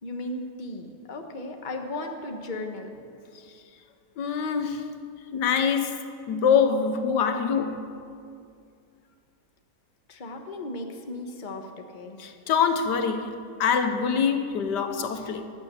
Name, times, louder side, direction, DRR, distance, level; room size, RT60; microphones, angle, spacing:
voice 1, 0.0-2.9 10.1-12.2, left 2 dB, 30° left, 1.3 m, -36 dB
voice 2, 4.2-4.8 5.3-7.9 12.2-15.5, left 6 dB, 85° left, 1.5 m, -25 dB
19.0 x 9.0 x 6.8 m
omnidirectional pair, 1.8 m